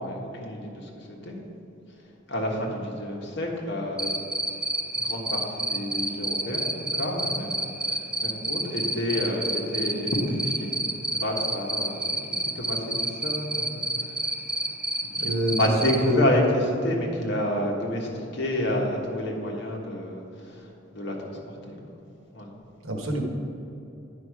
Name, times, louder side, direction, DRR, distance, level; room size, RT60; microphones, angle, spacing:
voice 1, 0.0-1.4 2.3-4.1 4.9-10.8 11.1-14.4 15.0-15.3 15.6-21.4 21.7-21.8 22.3-22.5, left 1 dB, 55° left, -1 dB, 1.4 m, -29 dB
Cricket, 4.0-16.0, right 1 dB, 5° right, 0.5 m, -27 dB
voice 2, 15.2-16.2 22.8-23.2, equal, 85° right, 2 dB, 1.2 m, -27 dB
9.9 x 5.4 x 4.9 m, 2.8 s
head